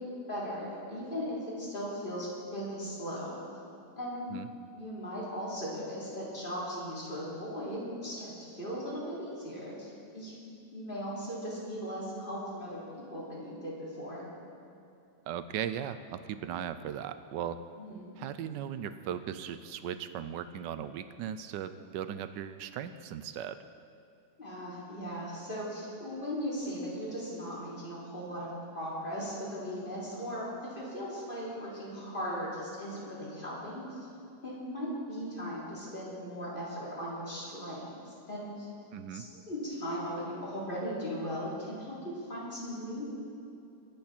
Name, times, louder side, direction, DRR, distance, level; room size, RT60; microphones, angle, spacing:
voice 1, 0.0-3.4 4.0-4.3 4.7-10.4 10.7-14.3 17.8-18.1 24.4-28.5 28.7-34.0 34.4-38.7 39.1-43.1, equal, 30° left, -7 dB, 3.6 m, -38 dB
voice 2, 15.3-17.6 18.2-23.6 38.9-39.2, right 9 dB, 85° right, 12 dB, 1.3 m, -37 dB
23.0 x 8.6 x 4.3 m, 2.7 s
omnidirectional pair, 1.9 m